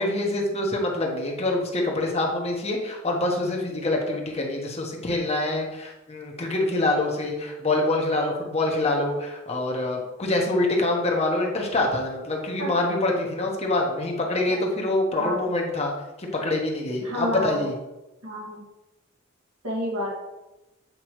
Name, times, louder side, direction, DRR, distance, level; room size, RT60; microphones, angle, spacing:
voice 1, 0.0-15.9 16.2-17.7, left 2 dB, 30° left, 0 dB, 1.1 m, -25 dB
voice 2, 17.0-17.7 18.2-18.7 19.6-20.1, equal, 75° right, -4 dB, 1.9 m, -30 dB
8.1 x 4.7 x 3.1 m, 1.0 s
head